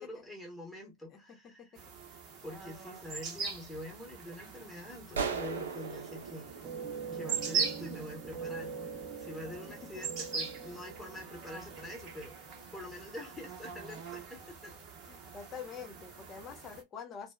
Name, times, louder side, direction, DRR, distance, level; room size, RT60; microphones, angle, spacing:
voice 1, 0.0-1.7 2.4-6.5 7.1-8.8 9.2-12.4 12.7-14.7, left 1 dB, 5° left, 1.1 m, -45 dB
voice 2, 1.1-1.8 9.8-10.0 15.1-17.3, left 6 dB, 25° left, 0.6 m, -46 dB
sound 1, 1.8-16.8, right 6 dB, 35° right, 0.9 m, -41 dB
sound 2, 5.1-7.7, right 5 dB, 65° right, 0.6 m, -38 dB
sound 3, 6.6-12.8, right 5 dB, 15° right, 0.5 m, -43 dB
2.7 x 2.1 x 2.3 m
figure-of-eight pair, 90°, 0 cm